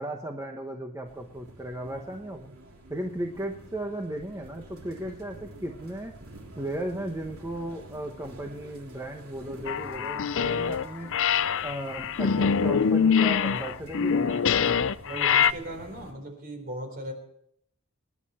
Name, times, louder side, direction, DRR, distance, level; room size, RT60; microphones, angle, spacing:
voice 1, 0.0-2.6 2.9-6.1 6.6-11.1 11.6-14.8, right 1 dB, 15° right, 2 dB, 1.1 m, -36 dB
sound 1, 1.0-16.1, right 1 dB, 75° right, 3.4 m, -48 dB
sound 2, 9.7-10.9 11.1-15.5, left 6 dB, 60° left, 0.5 m, -24 dB
voice 2, 15.0-17.1, right 1 dB, 45° right, 5 dB, 4.1 m, -37 dB
26.5 x 11.0 x 4.4 m, 0.70 s
head